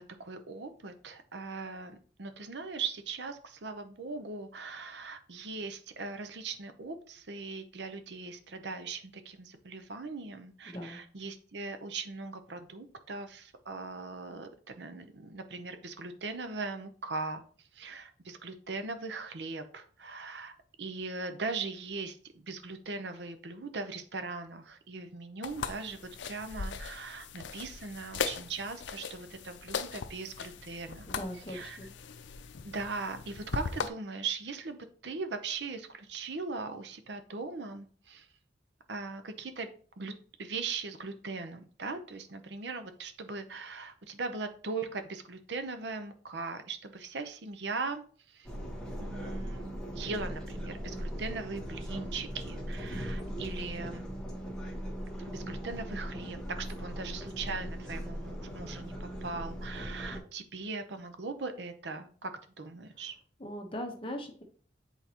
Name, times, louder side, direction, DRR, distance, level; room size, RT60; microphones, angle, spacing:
voice 1, 0.0-17.4 17.7-26.0 26.2-31.1 31.5-31.8 32.6-34.8 35.0-38.3 38.9-39.7 40.0-40.1 40.4-48.5 49.0-54.1 55.2-63.1, right 4 dB, 70° right, 8 dB, 0.7 m, -40 dB
voice 2, 10.7-11.0 31.1-31.9 63.4-64.4, left 1 dB, 30° left, 4 dB, 0.9 m, -40 dB
sound 1, 25.4-33.9, left 5 dB, 80° left, 0.5 m, -39 dB
sound 2, 48.4-60.2, equal, 5° left, 1.2 m, -39 dB
8.1 x 4.0 x 2.9 m, 0.44 s
head